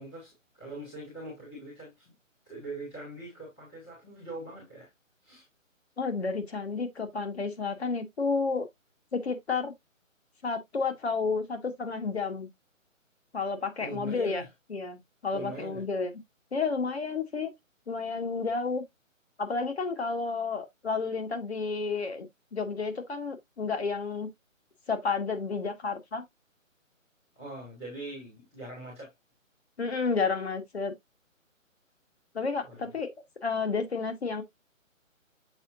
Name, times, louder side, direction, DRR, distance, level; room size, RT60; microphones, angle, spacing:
voice 1, 0.0-2.1 2.4-4.9 5.2-5.4 13.8-14.5 15.3-15.8 27.3-29.1 32.6-32.9, right 2 dB, 5° left, 0.9 m, -42 dB
voice 2, 6.0-8.7 9.1-9.7 10.4-12.5 13.3-14.4 14.7-16.1 16.5-17.5 17.9-18.8 19.4-22.3 22.5-24.3 24.9-26.2 29.8-30.9 32.3-33.1 33.4-34.4, left 4 dB, 50° left, 1.7 m, -31 dB
7.1 x 5.2 x 2.6 m
hypercardioid pair, 175°, 40 cm